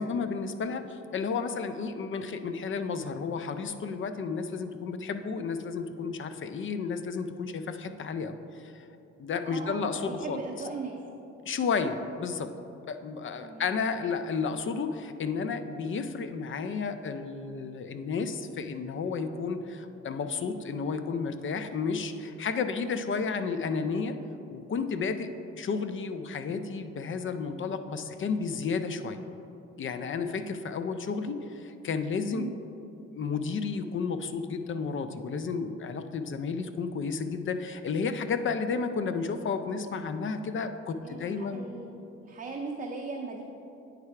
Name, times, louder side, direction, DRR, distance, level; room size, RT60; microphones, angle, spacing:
voice 1, 0.0-8.9 9.2-10.4 11.5-12.5 12.9-24.2 24.5-25.3 25.6-29.2 29.8-32.5 33.1-41.7, left 5 dB, 45° left, 9 dB, 0.5 m, -32 dB
voice 2, 9.4-11.0 13.4-13.7 32.3-32.5 41.0-42.0 42.3-43.4, right 4 dB, 30° right, 1 dB, 0.6 m, -38 dB
9.3 x 3.4 x 4.7 m, 2.8 s
cardioid pair, 80°, 29 cm